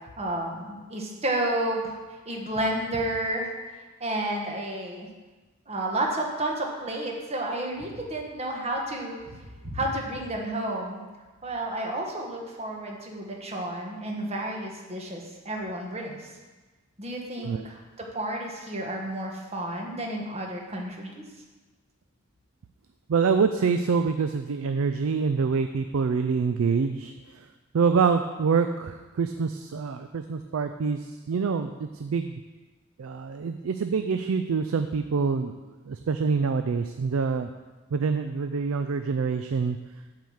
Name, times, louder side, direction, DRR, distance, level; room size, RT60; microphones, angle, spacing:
voice 1, 0.2-3.5 4.0-5.1 5.7-11.0 11.4-16.3 17.0-21.2, right 1 dB, 30° right, 0 dB, 1.3 m, -31 dB
voice 2, 23.1-27.1 27.7-32.4 33.0-35.5 35.9-37.5 37.9-39.8, right 5 dB, 75° right, 8 dB, 0.4 m, -26 dB
7.5 x 4.8 x 7.1 m, 1.3 s
head